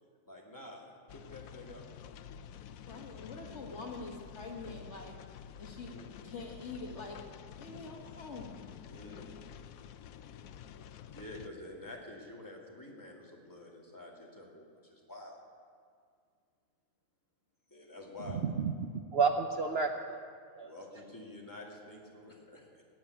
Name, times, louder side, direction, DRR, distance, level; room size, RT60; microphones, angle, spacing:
voice 1, 0.3-1.8 5.9-6.3 8.9-9.4 11.1-15.4 17.7-18.4 20.6-22.8, left 2 dB, 15° left, -2 dB, 2.5 m, -49 dB
sound 1, 1.1-11.5, left 8 dB, 75° left, 1.0 m, -49 dB
voice 2, 2.9-5.2 5.6-6.0 6.2-7.2 7.6-8.8, left 3 dB, 55° left, 1 dB, 1.9 m, -45 dB
voice 3, 18.3-20.2 20.6-20.7, right 5 dB, 55° right, 6 dB, 0.9 m, -31 dB
15.0 x 9.2 x 9.3 m, 2.1 s
omnidirectional pair, 1.5 m